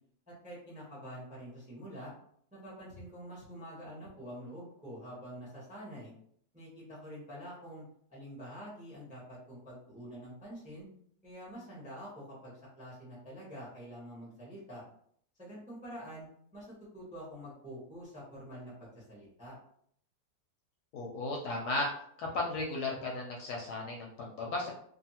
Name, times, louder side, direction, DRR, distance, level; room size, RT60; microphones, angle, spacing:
voice 1, 0.3-2.1 2.5-6.1 6.5-7.8 8.1-10.9 11.2-14.8 15.4-19.6, equal, 5° right, -5 dB, 0.6 m, -47 dB
voice 2, 20.9-21.9 22.2-24.7, left 2 dB, 70° left, -1 dB, 1.0 m, -35 dB
2.6 x 2.6 x 2.8 m, 0.65 s
omnidirectional pair, 2.0 m